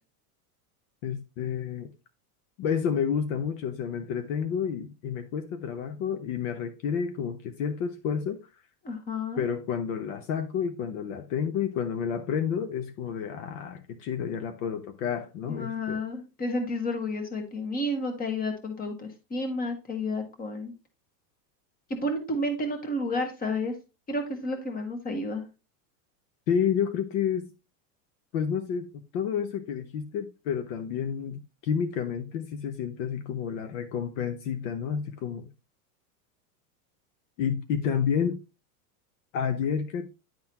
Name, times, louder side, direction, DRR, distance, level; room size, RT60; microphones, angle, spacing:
voice 1, 1.0-1.9 2.6-8.4 9.4-16.0 26.5-27.5 28.3-28.9 29.1-35.5 37.4-38.4 39.3-40.1, left 7 dB, 55° left, 0.9 m, -30 dB
voice 2, 8.8-9.4 15.5-20.7 22.0-23.7 24.1-25.4, left 1 dB, 20° left, 1.4 m, -31 dB
10.5 x 3.9 x 2.9 m
supercardioid pair, 145°, 47 cm